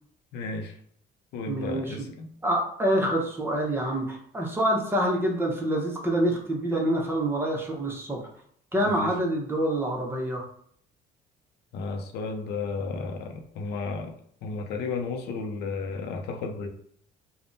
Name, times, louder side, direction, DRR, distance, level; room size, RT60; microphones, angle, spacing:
voice 1, 0.3-0.7 1.3-2.3 8.7-9.1 11.7-16.7, left 4 dB, 80° left, 4 dB, 0.5 m, -33 dB
voice 2, 1.5-2.0 2.4-8.2 8.7-10.4, right 1 dB, 15° right, -1 dB, 0.7 m, -26 dB
3.4 x 2.1 x 2.6 m, 0.63 s
cardioid pair, 110°, 17 cm